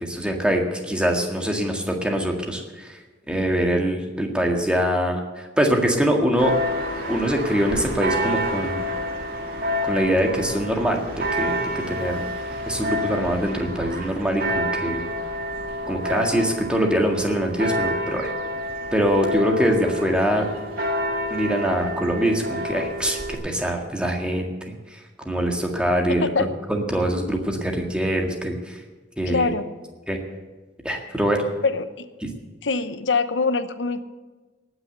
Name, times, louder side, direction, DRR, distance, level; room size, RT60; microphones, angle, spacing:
voice 1, 0.0-2.9 3.3-5.2 5.6-6.5 7.1-8.8 9.8-12.2 12.7-15.1 15.9-18.3 18.9-20.5 21.3-24.5 25.2-26.3 26.7-28.8 29.2-29.5 30.1-30.2 30.8-31.4, equal, 5° right, 1 dB, 1.8 m, -23 dB
Church bell, 6.4-23.4, equal, 55° right, 2.3 m, -28 dB
voice 2, 29.3-29.7 31.6-32.1 32.6-34.0, left 4 dB, 90° left, 11 dB, 0.9 m, -23 dB
19.0 x 6.4 x 8.0 m, 1.3 s
head